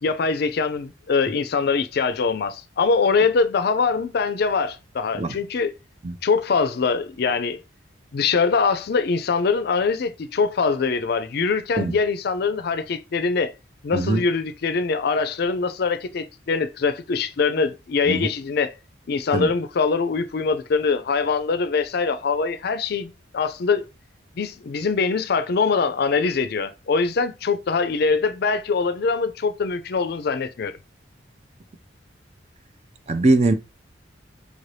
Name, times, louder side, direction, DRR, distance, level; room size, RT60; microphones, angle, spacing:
voice 1, 0.0-5.7 6.2-7.6 8.1-13.5 13.8-18.7 19.1-23.9 24.4-30.8, left 4 dB, 55° left, 0.4 m, -23 dB
voice 2, 33.1-33.5, right 2 dB, 35° right, 0.5 m, -21 dB
5.0 x 2.6 x 3.2 m
head